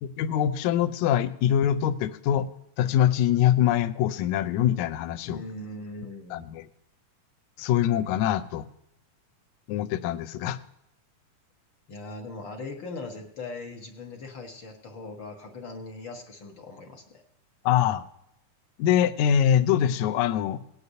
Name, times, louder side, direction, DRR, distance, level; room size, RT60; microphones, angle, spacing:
voice 1, 0.0-2.5 2.8-5.4 6.3-6.7 7.6-8.7 9.7-10.6 17.7-18.1 18.8-20.6, left 10 dB, 80° left, 10 dB, 1.9 m, -24 dB
voice 2, 5.2-6.4 11.9-17.2, left 2 dB, 55° left, 2 dB, 1.4 m, -40 dB
19.0 x 9.6 x 2.7 m, 0.81 s
omnidirectional pair, 3.7 m